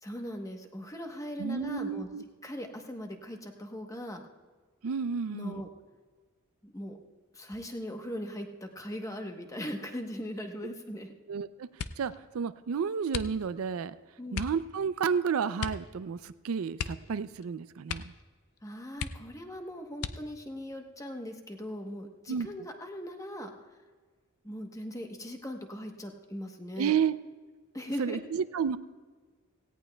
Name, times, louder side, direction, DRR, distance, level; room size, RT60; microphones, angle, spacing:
voice 1, 0.0-2.1 2.4-4.2 5.3-5.7 6.6-7.0 7.3-11.1 14.2-14.4 18.6-23.5 24.4-27.0 27.7-28.2, equal, 15° left, 4 dB, 1.0 m, -39 dB
voice 2, 1.4-2.2 4.8-5.6 11.3-13.9 14.3-18.1 22.3-22.5 26.8-27.2 28.0-28.8, right 6 dB, 80° right, 14 dB, 0.4 m, -31 dB
sound 1, 11.7-12.2 13.1-13.7 14.3-14.6 15.6-16.2 16.7-17.5 17.8-18.3 18.6-18.7 18.9-19.5 20.0-20.5 21.2-21.8 22.2-22.6, left 6 dB, 85° left, 0.5 m, -38 dB
17.5 x 16.5 x 2.2 m, 1.4 s
head